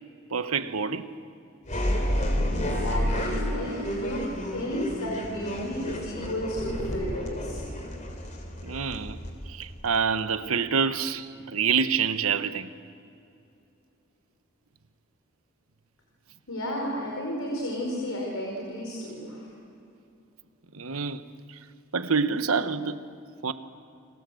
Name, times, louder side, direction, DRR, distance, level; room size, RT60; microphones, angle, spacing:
voice 1, 0.3-1.1 2.4-2.5 8.6-9.2 9.5-12.7 20.7-21.2 21.9-23.0 23.4-23.5, right 6 dB, 80° right, 1.2 m, -27 dB
sound 1, 1.7-10.3, equal, 35° left, 3.4 m, -30 dB
voice 2, 2.5-7.6 16.5-19.5, equal, 80° left, 4.7 m, -33 dB
30.0 x 24.5 x 7.8 m
head